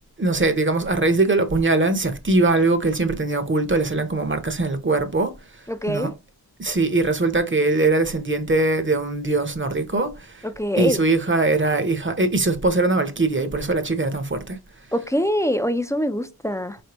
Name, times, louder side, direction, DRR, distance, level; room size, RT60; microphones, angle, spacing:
voice 1, 0.2-5.4 5.9-6.1 6.6-10.4 10.8-14.6, right 2 dB, 30° right, 0.7 m, -21 dB
voice 2, 5.7-6.1 10.4-11.0 14.9-16.8, equal, 10° left, 0.4 m, -24 dB
4.2 x 3.3 x 2.9 m
wide cardioid pair, 75°, 39 cm